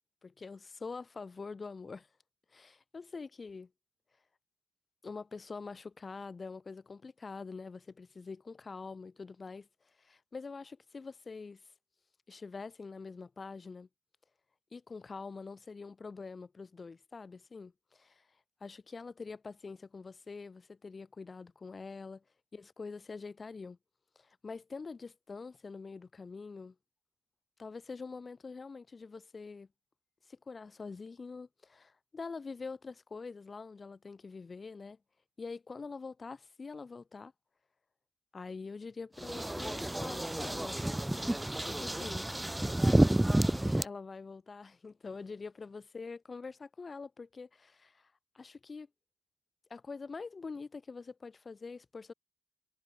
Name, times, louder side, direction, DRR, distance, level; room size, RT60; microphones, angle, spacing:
voice 1, 0.2-2.1 2.5-3.7 5.0-9.7 10.0-11.6 12.3-13.9 14.7-18.3 18.6-22.2 22.5-23.8 24.2-26.7 27.6-29.7 30.3-35.0 35.4-37.3 38.3-40.8 41.3-42.3 43.6-48.9 49.7-52.1, left 4 dB, 35° left, 4.3 m, -45 dB
sound 1, 39.2-43.8, right 1 dB, 10° right, 2.5 m, -30 dB
cardioid pair, 80°, 0 cm